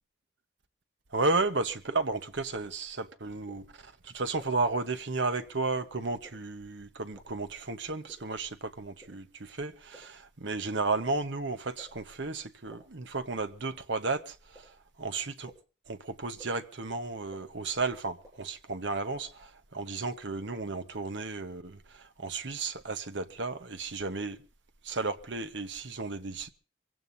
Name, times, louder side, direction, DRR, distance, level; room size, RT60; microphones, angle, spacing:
voice 1, 1.1-15.5 15.9-24.4 24.8-26.5, right 3 dB, 70° right, 1.1 m, -33 dB
sound 1, 2.5-2.6 3.5-3.6 4.4-4.5 5.3-5.4 6.2-6.3 7.2-7.3 8.1-8.2 9.0-9.1 9.9-10.0 10.8-10.9 11.8-11.9 12.7-12.8 13.6-13.7 14.5-14.6 15.5-15.6 16.4-16.5 17.3-17.4 18.2-18.3 19.2-19.3, equal, 20° right, 7.8 m, -52 dB
24.5 x 16.5 x 2.8 m
head